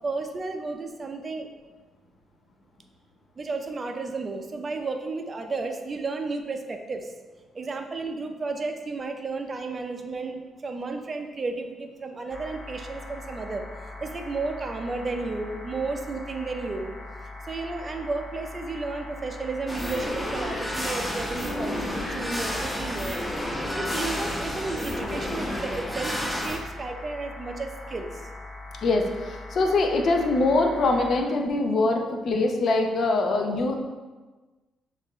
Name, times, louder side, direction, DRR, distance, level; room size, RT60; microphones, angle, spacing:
voice 1, 0.0-1.5 3.4-7.1 7.5-13.6 14.0-17.0 17.4-23.2 23.7-28.3, right 3 dB, 35° right, 5 dB, 0.5 m, -33 dB
sound 1, 12.3-31.2, left 2 dB, 35° left, 0.9 m, -41 dB
sound 2, 19.7-26.6, left 1 dB, 10° left, 1.3 m, -30 dB
voice 2, 28.8-33.8, left 2 dB, 55° left, 3 dB, 0.6 m, -23 dB
6.4 x 2.5 x 3.1 m, 1.3 s
cardioid pair, 90°, 0 cm